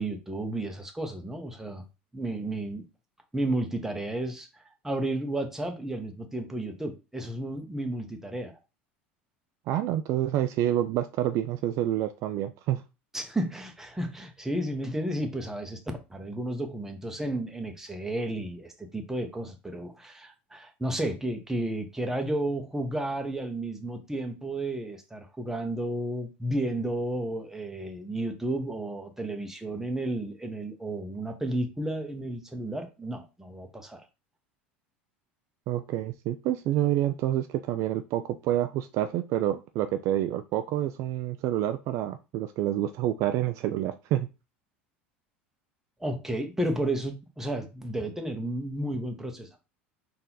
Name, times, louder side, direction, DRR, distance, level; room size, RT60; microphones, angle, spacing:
voice 1, 0.0-1.8 2.1-2.8 3.3-4.5 4.8-8.6 13.1-15.8 16.1-34.0 46.0-49.6, right 1 dB, 5° right, 1.0 m, -32 dB
voice 2, 9.7-12.8 35.7-44.3, right 12 dB, 50° right, 0.4 m, -28 dB
4.1 x 2.7 x 3.9 m
hypercardioid pair, 75°, 6 cm